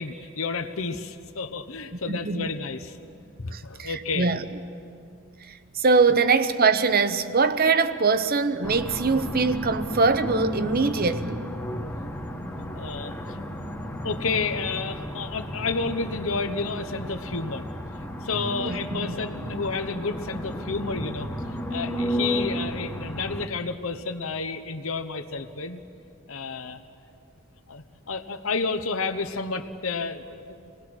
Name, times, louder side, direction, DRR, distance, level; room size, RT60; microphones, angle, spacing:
voice 1, 0.0-3.0 3.4-4.3 12.7-13.4 14.0-17.6 18.2-21.3 21.7-25.8 26.3-26.8 27.7-30.6, left 4 dB, 75° left, 1.0 m, -31 dB
voice 2, 2.1-2.5 3.5-4.6 5.7-11.4 13.8-13.9 18.6-19.2, right 4 dB, 45° right, 0.9 m, -23 dB
sound 1, 8.6-23.5, equal, 10° left, 1.2 m, -33 dB
27.5 x 19.5 x 6.2 m
head